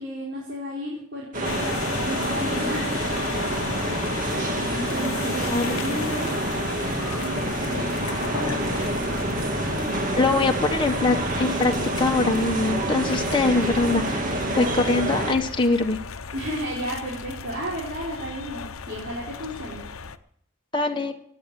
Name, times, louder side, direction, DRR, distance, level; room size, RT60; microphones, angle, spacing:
voice 1, 0.0-3.7 4.7-6.5 7.1-9.2 14.5-14.9 16.3-19.8, equal, 55° right, -5 dB, 4.2 m, -33 dB
sound 1, 1.3-15.4, right 1 dB, 40° right, 2.2 m, -27 dB
sound 2, 1.4-20.2, left 5 dB, 90° left, 0.8 m, -35 dB
voice 2, 10.2-11.7 12.0-14.3 14.5-16.0 20.7-21.1, left 3 dB, 25° left, 2 dB, 1.3 m, -23 dB
17.0 x 9.5 x 7.7 m, 0.67 s
head